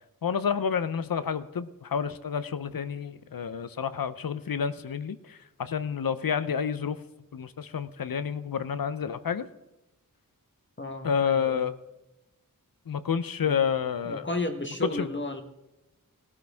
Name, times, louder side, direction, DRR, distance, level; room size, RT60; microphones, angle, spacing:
voice 1, 0.2-7.0 7.3-9.5 11.0-11.7 12.9-14.3 14.9-15.1, left 7 dB, 80° left, 13 dB, 0.8 m, -29 dB
voice 2, 10.8-11.6 13.4-13.6 14.1-15.4, left 1 dB, 35° left, 4 dB, 1.3 m, -33 dB
18.0 x 12.0 x 3.6 m, 0.96 s
wide cardioid pair, 75°, 35 cm